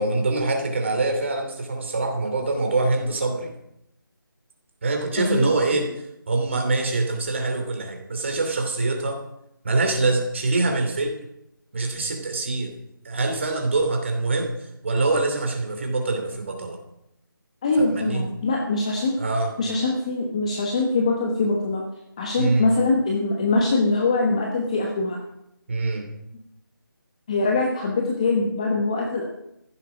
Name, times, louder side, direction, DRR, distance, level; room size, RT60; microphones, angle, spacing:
voice 1, 0.0-3.5 4.8-5.9 6.3-9.2 9.6-11.2 11.7-12.7 13.0-16.8 17.8-18.3 19.2-19.5 22.4-22.7 25.7-26.1, right 2 dB, 35° right, 4 dB, 2.8 m, -24 dB
voice 2, 5.2-5.8 17.6-19.2 19.6-21.8 22.2-25.2 27.3-29.2, left 3 dB, 15° left, 0 dB, 1.1 m, -23 dB
15.0 x 11.5 x 6.0 m, 0.82 s
figure-of-eight pair, 175°, 12 cm